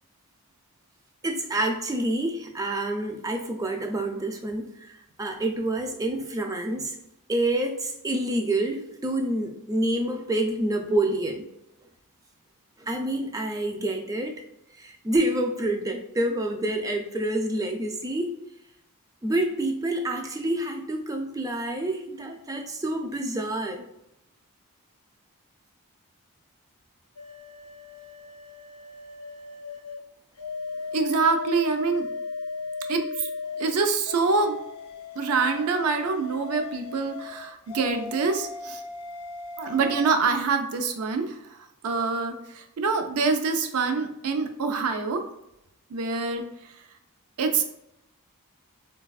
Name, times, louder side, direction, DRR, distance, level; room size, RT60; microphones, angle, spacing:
voice 1, 1.2-7.0 7.3-11.4 12.8-14.4 14.8-18.3 19.2-23.9, right 1 dB, 15° right, 4 dB, 0.3 m, -28 dB
sound 1, 27.2-30.0 30.4-33.7 34.1-40.1, left 4 dB, 80° left, 0.5 m, -37 dB
voice 2, 30.9-32.1 32.9-33.3 33.6-34.6 35.2-38.8 39.6-41.6 41.8-45.3 45.9-46.7 47.4-47.6, right 4 dB, 80° right, 6 dB, 0.4 m, -25 dB
4.0 x 2.2 x 2.3 m, 0.84 s
head